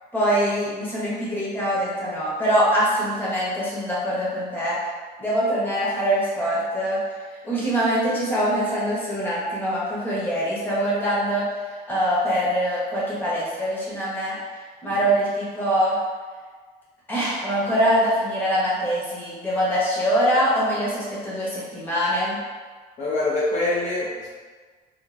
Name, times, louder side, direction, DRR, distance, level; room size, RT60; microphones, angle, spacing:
voice 1, 0.1-4.8 5.2-7.0 7.4-11.5 11.9-14.4 14.8-16.0 17.1-22.4, equal, 10° left, -8 dB, 1.0 m, -23 dB
voice 2, 23.0-24.3, left 2 dB, 45° left, -7 dB, 0.6 m, -24 dB
2.8 x 2.4 x 2.5 m, 1.5 s
cardioid pair, 110°, 17 cm